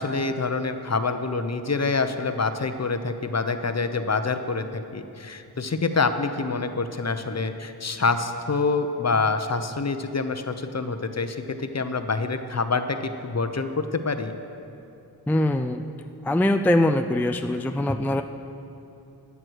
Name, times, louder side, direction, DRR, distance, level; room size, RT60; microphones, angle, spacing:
voice 1, 0.0-13.0 13.2-14.3, left 4 dB, 40° left, 8 dB, 0.8 m, -26 dB
voice 2, 15.3-15.8 16.2-18.2, left 1 dB, 5° left, 7 dB, 0.4 m, -22 dB
14.0 x 9.6 x 4.7 m, 2.8 s
wide cardioid pair, 50°, 40 cm